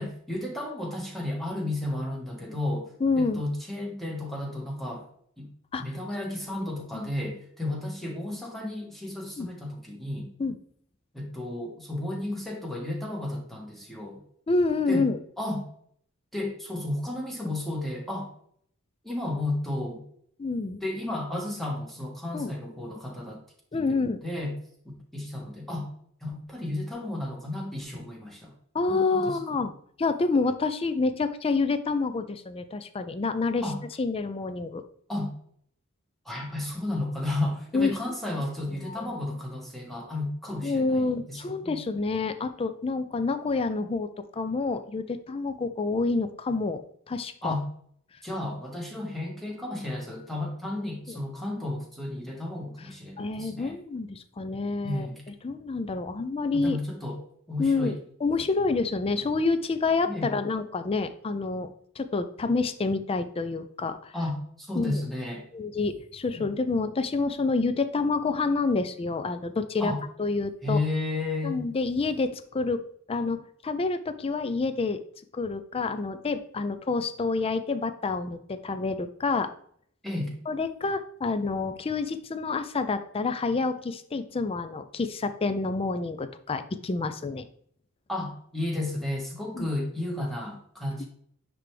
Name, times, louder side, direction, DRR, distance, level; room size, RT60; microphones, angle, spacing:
voice 1, 0.0-5.1 5.4-5.5 5.8-10.3 11.1-14.2 14.9-15.1 15.4-15.7 16.3-18.3 19.0-20.0 20.8-23.4 23.7-24.6 25.1-25.9 26.2-28.5 28.9-29.7 33.6-33.8 35.1-35.3 36.2-41.8 47.4-47.7 48.2-53.8 54.8-55.2 56.5-58.0 60.1-60.4 64.1-65.4 66.4-66.5 69.8-70.0 70.6-71.6 80.0-80.4 88.1-91.1, left 1 dB, ahead, -2 dB, 1.5 m, -33 dB
voice 2, 3.0-3.5 5.7-5.8 6.9-7.1 9.4-9.5 10.4-10.6 14.5-15.2 20.4-20.8 22.3-22.5 23.7-24.2 28.7-29.7 30.0-33.6 34.0-34.8 37.7-37.9 38.8-39.1 40.6-46.8 47.1-47.5 53.2-55.1 55.4-56.8 57.6-61.7 62.0-64.1 64.8-65.0 65.5-69.9 70.2-70.8 71.4-75.0 75.3-79.5 80.5-87.5 89.6-89.7, left 3 dB, 25° left, 10 dB, 0.4 m, -28 dB
9.8 x 3.4 x 3.3 m, 0.63 s
head